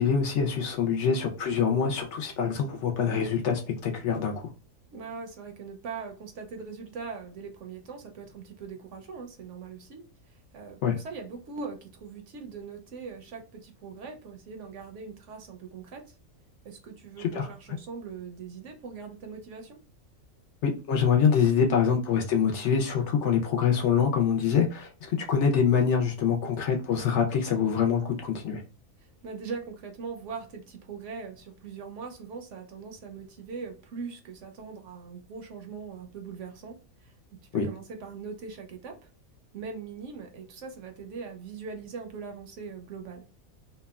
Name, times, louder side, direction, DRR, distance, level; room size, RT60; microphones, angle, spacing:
voice 1, 0.0-4.5 10.8-11.0 17.2-17.5 20.6-28.6 37.5-37.7, left 7 dB, 65° left, 2 dB, 0.8 m, -25 dB
voice 2, 4.9-16.2 16.6-19.8 29.0-39.1 39.5-43.2, right 5 dB, 70° right, 4 dB, 0.8 m, -41 dB
2.8 x 2.1 x 2.2 m, 0.36 s
omnidirectional pair, 1.5 m